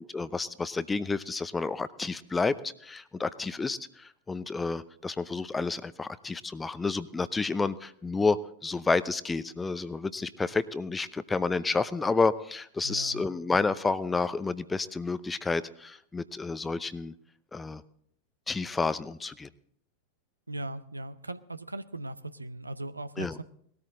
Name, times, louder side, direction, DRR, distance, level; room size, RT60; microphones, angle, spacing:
voice 1, 0.0-2.6 2.8-17.1 17.5-17.8 18.5-19.5 23.2-23.3, left 4 dB, 10° left, 16 dB, 0.6 m, -30 dB
voice 2, 12.8-13.2 20.5-23.4, right 2 dB, 80° right, 14 dB, 0.6 m, -38 dB
19.0 x 13.0 x 3.7 m, 0.65 s
figure-of-eight pair, 90°, 0 cm